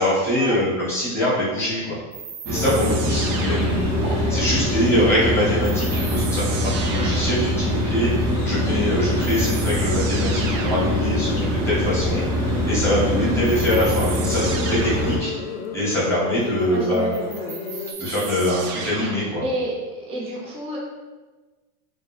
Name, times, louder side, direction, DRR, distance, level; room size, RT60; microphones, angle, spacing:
voice 1, 0.0-1.9 2.5-12.2 12.6-15.3 15.7-17.1 18.0-19.4, left 1 dB, 5° left, -9 dB, 1.2 m, -23 dB
sound 1, 2.1-4.2 5.6-7.5 8.7-8.8 9.2-11.1 13.4-15.2 16.9-19.4, right 5 dB, 60° right, 0.6 m, -34 dB
sound 2, 2.5-17.9, left 6 dB, 75° left, 0.6 m, -34 dB
sound 3, 2.5-15.2, equal, 85° right, 0.9 m, -23 dB
voice 2, 13.1-13.4 16.7-17.5 19.4-19.8 20.1-20.8, right 1 dB, 15° right, -5 dB, 0.6 m, -28 dB
3.3 x 2.7 x 3.0 m, 1.3 s
supercardioid pair, 150°, 45 cm